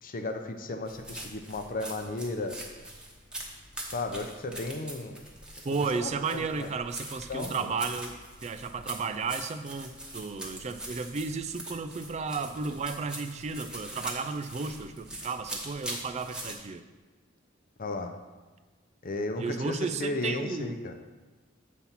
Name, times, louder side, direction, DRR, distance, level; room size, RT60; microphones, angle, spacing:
voice 1, 0.0-2.5 3.9-5.2 5.9-6.7 7.3-7.7 17.8-18.2 19.0-20.9, left 2 dB, 45° left, 6 dB, 0.6 m, -34 dB
sound 1, 0.8-16.5, right 1 dB, 5° right, 1.0 m, -43 dB
voice 2, 5.6-16.8 19.4-20.8, right 4 dB, 35° right, 10 dB, 0.3 m, -33 dB
7.3 x 4.1 x 5.8 m, 1.3 s
head